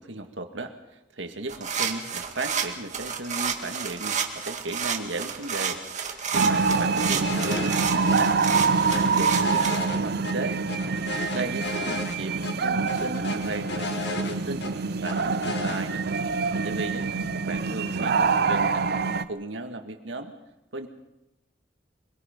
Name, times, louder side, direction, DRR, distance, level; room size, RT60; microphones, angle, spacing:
voice 1, 0.0-8.4 8.8-10.6 11.3-12.3 12.6-14.7 15.0-16.1 16.6-17.1 17.3-18.9 19.1-20.3 20.7-20.9, right 2 dB, 75° right, 6 dB, 2.0 m, -35 dB
sound 1, 1.5-9.8, right 7 dB, 40° right, 2.1 m, -31 dB
sound 2, 6.3-19.3, right 4 dB, 60° right, 0.7 m, -25 dB
sound 3, 7.2-7.8 8.1-8.2 8.5-10.3 10.7-12.2 12.4-12.5 12.9-14.7 15.0-15.8, left 3 dB, 65° left, 2.1 m, -34 dB
24.5 x 22.5 x 5.4 m, 0.93 s
head